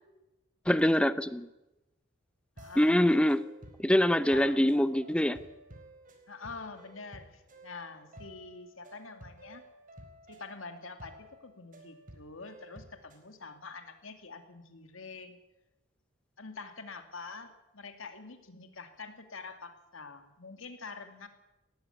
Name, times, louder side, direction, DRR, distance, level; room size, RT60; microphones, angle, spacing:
voice 1, 0.7-1.5 2.8-3.4 3.8-5.4, left 1 dB, 5° left, 14 dB, 0.8 m, -24 dB
voice 2, 2.6-3.0 4.3-4.7 6.3-9.6 10.3-15.4 16.4-21.3, left 4 dB, 75° left, 7 dB, 2.5 m, -46 dB
sound 1, 2.6-13.3, right 1 dB, 40° right, 4.2 m, -53 dB
18.0 x 15.0 x 9.7 m, 0.98 s
head